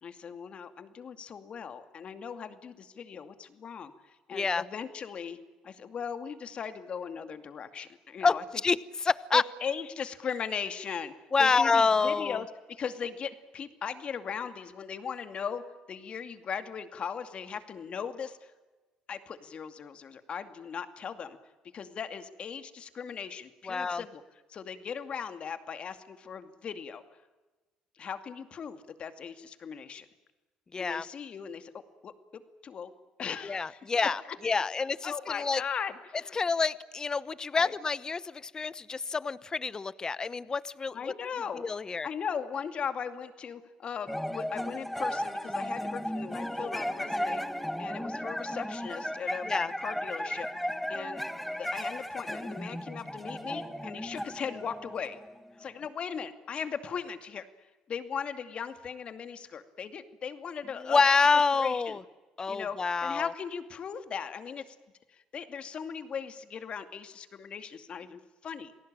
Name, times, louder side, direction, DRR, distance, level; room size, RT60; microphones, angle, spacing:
voice 1, 0.0-5.4 5.6-8.4 9.3-11.1 11.4-18.5 19.1-21.4 21.7-24.2 24.5-27.0 28.0-30.1 30.8-32.9 33.2-33.8 35.0-36.4 37.5-37.7 40.9-41.6 42.0-47.4 47.8-49.5 49.8-50.5 50.9-55.2 55.6-57.5 57.9-61.0 61.6-62.0 62.5-64.8 65.1-68.7, left 7 dB, 50° left, 9 dB, 2.4 m, -38 dB
voice 2, 4.3-4.6 8.2-8.4 8.6-9.4 11.3-12.4 23.7-24.0 30.7-31.1 33.4-35.6 36.3-41.0 41.6-42.1 49.4-49.7 60.8-62.0 62.4-63.3, left 4 dB, 30° left, 17 dB, 1.0 m, -27 dB
sound 1, 44.1-55.6, equal, 5° left, 1.5 m, -35 dB
28.0 x 18.5 x 9.0 m, 1.2 s
supercardioid pair, 85°, 2 cm